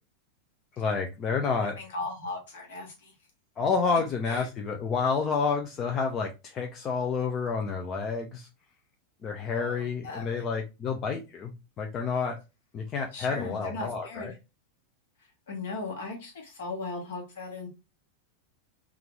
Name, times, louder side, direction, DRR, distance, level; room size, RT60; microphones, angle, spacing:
voice 1, 0.8-1.7 3.6-8.5 9.2-11.5 11.8-12.4 12.7-14.3, left 5 dB, 30° left, 0.5 m, -29 dB
voice 2, 1.8-3.1 4.3-4.5 9.5-10.4 13.1-14.4 15.5-17.7, left 3 dB, 60° left, 1.3 m, -38 dB
3.5 x 2.4 x 3.1 m
figure-of-eight pair, 90°, 0 cm